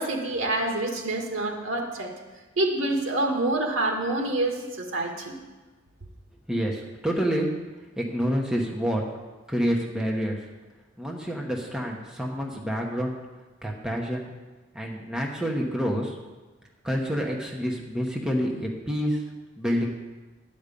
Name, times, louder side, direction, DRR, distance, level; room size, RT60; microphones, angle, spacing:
voice 1, 0.0-2.1 2.6-5.4, right 2 dB, 80° right, 1 dB, 1.9 m, -27 dB
voice 2, 6.5-7.5 8.0-9.0 9.5-10.4 11.0-13.1 13.6-14.3 14.7-16.2 16.8-19.2 19.6-19.9, equal, 5° right, -1 dB, 1.1 m, -28 dB
11.5 x 5.2 x 8.4 m, 1.2 s
head